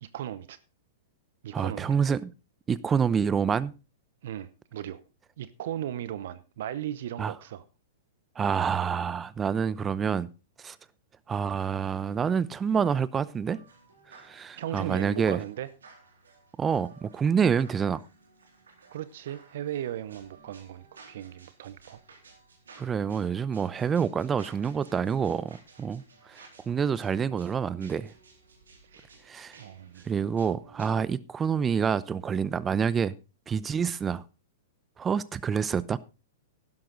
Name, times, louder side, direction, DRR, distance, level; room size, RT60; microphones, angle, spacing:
voice 1, 0.0-0.6 1.4-2.0 4.2-5.0 5.4-7.6 14.6-15.7 18.9-22.0 28.9-29.1 29.6-30.0, right 11 dB, 65° right, 0.8 m, -37 dB
voice 2, 1.5-2.3 2.7-3.7 7.2-7.3 8.4-10.3 10.6-10.8 11.3-13.6 14.2-15.4 16.6-18.0 22.8-26.0 26.3-28.1 29.3-29.6 30.0-33.1 33.5-34.2 35.0-36.0, right 7 dB, 20° right, 0.7 m, -27 dB
sound 1, 13.5-31.1, right 4 dB, 85° right, 3.9 m, -56 dB
12.0 x 11.0 x 3.9 m
hypercardioid pair, 115°, 0 cm